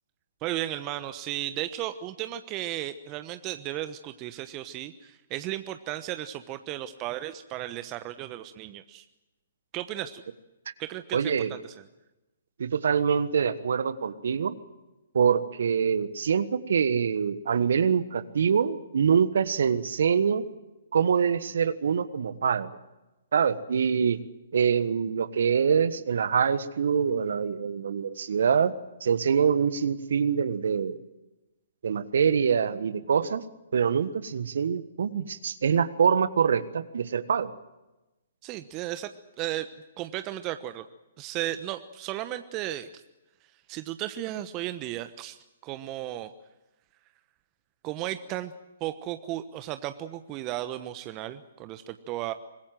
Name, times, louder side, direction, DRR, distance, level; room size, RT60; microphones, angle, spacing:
voice 1, 0.4-9.0 9.7-10.2 10.8-11.7 38.4-39.1 39.4-39.7 40.0-40.9 41.2-42.9 43.7-46.3 47.8-48.5 48.8-52.3, right 14 dB, 30° right, 10 dB, 1.1 m, -34 dB
voice 2, 11.1-11.5 12.6-14.6 15.1-20.4 20.9-22.7 23.3-24.2 24.5-28.7 29.0-31.0 31.8-33.4 33.7-37.5, right 7 dB, 65° right, 14 dB, 1.4 m, -25 dB
25.0 x 21.0 x 7.7 m, 1.0 s
figure-of-eight pair, 125°, 0 cm